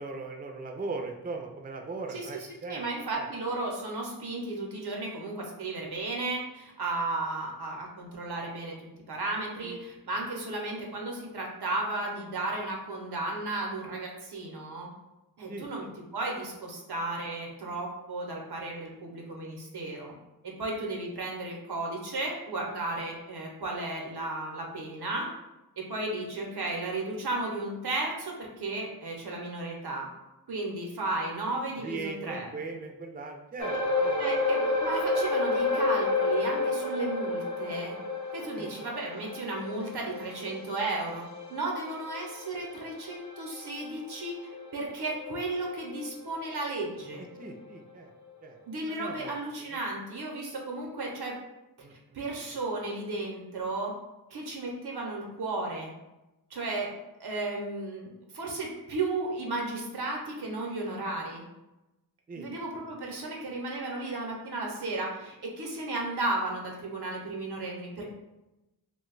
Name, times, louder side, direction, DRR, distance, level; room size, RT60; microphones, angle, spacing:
voice 1, 0.0-2.8 3.1-3.3 9.6-9.8 15.5-15.9 31.8-34.2 38.5-38.7 47.4-48.1 48.4-48.6 48.9-49.3 49.7-49.8 51.8-51.9 62.3-62.5, right 3 dB, 25° right, 3 dB, 0.4 m, -39 dB
voice 2, 2.1-14.9 15.4-15.8 16.1-20.1 20.6-25.3 25.8-30.1 30.5-32.5 34.2-38.0 38.3-47.2 48.7-51.3 52.1-53.9 54.3-55.9 56.5-56.9 57.2-61.4 62.3-68.1, right 2 dB, 85° right, 0 dB, 0.7 m, -34 dB
sound 1, 33.6-46.3 46.6-46.8 47.4-47.5, left 2 dB, 50° left, 0.6 m, -31 dB
2.5 x 2.2 x 3.8 m, 0.98 s
cardioid pair, 40°, 38 cm